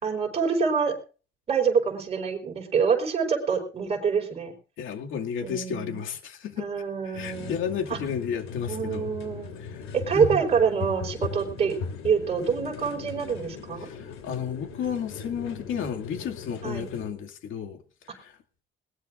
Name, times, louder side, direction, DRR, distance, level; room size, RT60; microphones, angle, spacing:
voice 1, 0.0-0.9 1.5-4.5 5.4-6.0 6.5-7.6 7.9-8.0 8.7-9.6 9.9-11.7 12.0-13.9 16.6-16.9, right 6 dB, 30° right, 4.5 m, -26 dB
voice 2, 4.8-6.7 7.1-9.1 9.6-10.4 13.8-17.8 18.1-18.4, left 7 dB, 70° left, 2.4 m, -33 dB
sound 1, 7.1-17.1, left 5 dB, 85° left, 3.4 m, -38 dB
21.0 x 18.5 x 2.6 m
cardioid pair, 180°, 21 cm